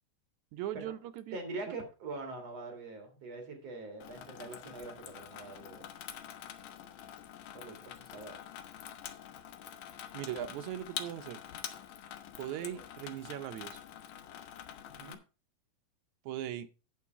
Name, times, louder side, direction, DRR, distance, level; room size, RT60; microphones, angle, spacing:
voice 1, 0.5-1.4 10.1-11.4 12.4-13.8 16.3-16.7, right 11 dB, 75° right, 10 dB, 1.8 m, -39 dB
voice 2, 1.3-5.9 7.5-8.4 12.7-12.8 15.0-15.2, right 3 dB, 55° right, 4 dB, 2.9 m, -43 dB
Water tap faucet / Sink (filling or washing), 4.0-15.2, left 10 dB, 75° left, 2.4 m, -46 dB
8.5 x 7.9 x 4.5 m, 0.32 s
omnidirectional pair, 3.8 m